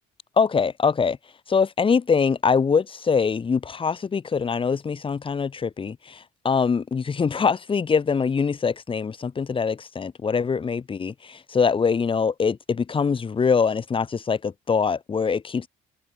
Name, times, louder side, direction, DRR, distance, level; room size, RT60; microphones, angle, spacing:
voice 1, 0.4-1.2 1.5-15.7, left 5 dB, 30° left, 3.8 m, -23 dB
cardioid pair, 110°, 17 cm